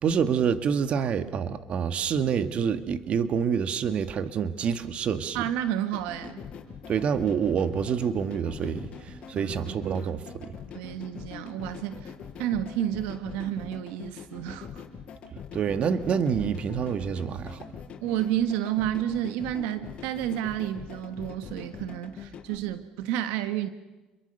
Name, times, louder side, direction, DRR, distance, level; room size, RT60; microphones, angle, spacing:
voice 1, 0.0-5.4 6.9-10.6 15.3-17.7, right 7 dB, 50° right, 1.9 m, -27 dB
voice 2, 5.3-6.4 9.3-10.1 10.7-12.1 12.4-14.8 18.0-23.7, right 11 dB, 85° right, 1.4 m, -31 dB
sound 1, 5.9-22.6, left 7 dB, 50° left, 4.8 m, -43 dB
29.0 x 23.0 x 6.9 m
supercardioid pair, 95°, 3 cm